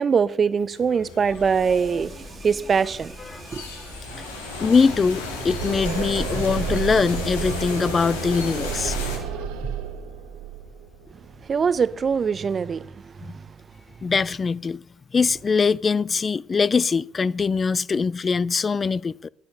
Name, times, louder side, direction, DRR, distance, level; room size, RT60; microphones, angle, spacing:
voice 1, 0.0-3.1 3.5-3.6 11.5-13.5, right 6 dB, 45° right, 0.7 m, -23 dB
sound 1, 0.7-9.2, left 3 dB, 90° left, 1.8 m, -35 dB
sound 2, 1.3-9.5, left 1 dB, 5° left, 2.1 m, -43 dB
sound 3, 3.4-12.2, right 7 dB, 80° right, 1.0 m, -32 dB
voice 2, 4.6-9.0 13.2-13.4 14.0-14.8 15.1-19.3, left 5 dB, 35° left, 0.4 m, -22 dB
10.5 x 9.5 x 6.6 m
hypercardioid pair, 55°, 0 cm